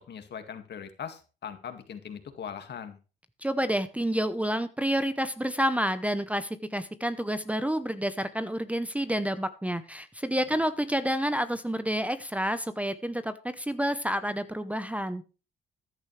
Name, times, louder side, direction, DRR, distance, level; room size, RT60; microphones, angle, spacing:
voice 1, 0.0-3.0 10.5-10.6, left 8 dB, 60° left, 8 dB, 2.0 m, -40 dB
voice 2, 3.4-15.2, equal, 5° right, 12 dB, 0.8 m, -29 dB
14.5 x 10.5 x 3.2 m, 0.32 s
cardioid pair, 90°, 20 cm